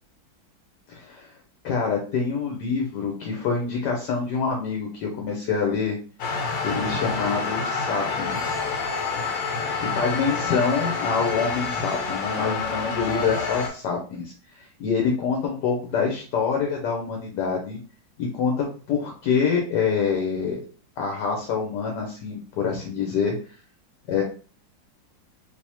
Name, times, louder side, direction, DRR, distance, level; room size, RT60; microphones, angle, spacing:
voice 1, 0.9-1.3 1.6-6.0 6.6-8.6 9.8-17.8 18.2-20.6 21.0-23.3 24.1-24.2, left 5 dB, 70° left, 0 dB, 1.3 m, -26 dB
sound 1, 6.2-13.7, left 4 dB, 85° left, 1.5 m, -28 dB
3.4 x 2.8 x 2.9 m, 0.39 s
omnidirectional pair, 2.0 m